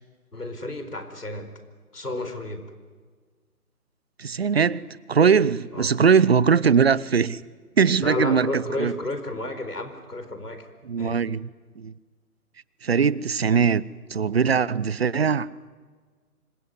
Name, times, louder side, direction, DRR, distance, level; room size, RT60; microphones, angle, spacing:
voice 1, 0.3-1.5 1.9-2.7 5.7-6.0 8.0-10.7 11.0-11.2, left 2 dB, 90° left, 8 dB, 4.6 m, -31 dB
voice 2, 4.2-7.4 7.8-8.9 10.8-11.5 11.8-11.9 12.8-13.8 14.1-15.5, right 6 dB, 40° right, 21 dB, 0.7 m, -21 dB
25.5 x 21.0 x 9.7 m, 1.5 s
figure-of-eight pair, 150°, 45 cm